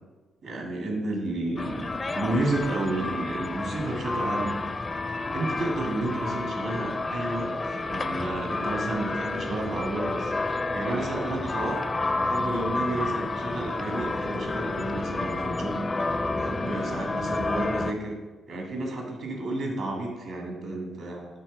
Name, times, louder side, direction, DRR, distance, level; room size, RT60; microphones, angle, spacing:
voice 1, 0.4-4.5 5.3-7.5 7.9-10.3 10.7-11.8 12.2-15.8 16.3-18.2 18.5-21.3, right 2 dB, 70° right, 0 dB, 1.7 m, -31 dB
sound 1, 1.6-17.9, left 3 dB, 35° left, 0.4 m, -30 dB
6.7 x 3.6 x 5.1 m, 1.3 s
hypercardioid pair, 45°, 0 cm